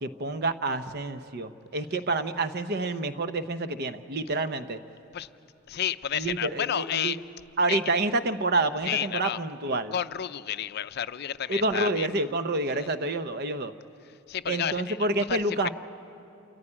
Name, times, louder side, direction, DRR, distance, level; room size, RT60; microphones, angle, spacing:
voice 1, 0.0-4.8 6.2-7.1 7.6-9.9 11.5-13.7 14.5-15.7, right 2 dB, 50° right, 10 dB, 0.9 m, -28 dB
voice 2, 5.7-7.2 7.7-7.8 8.8-9.4 9.9-12.1 12.7-12.9 14.3-15.0 15.3-15.7, left 9 dB, 50° left, 13 dB, 0.5 m, -31 dB
27.5 x 14.5 x 9.9 m, 2.6 s
head